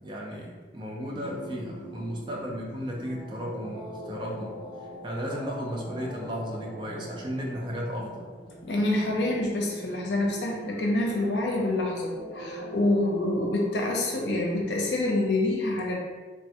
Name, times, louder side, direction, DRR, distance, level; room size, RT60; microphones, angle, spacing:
voice 1, 0.0-4.5 5.0-8.3, equal, 25° right, -1 dB, 0.4 m, -34 dB
sound 1, 1.1-14.6, right 1 dB, 30° left, 0.7 m, -42 dB
voice 2, 8.6-15.9, left 2 dB, 70° left, -1 dB, 0.6 m, -27 dB
3.2 x 2.1 x 2.8 m, 1.3 s
head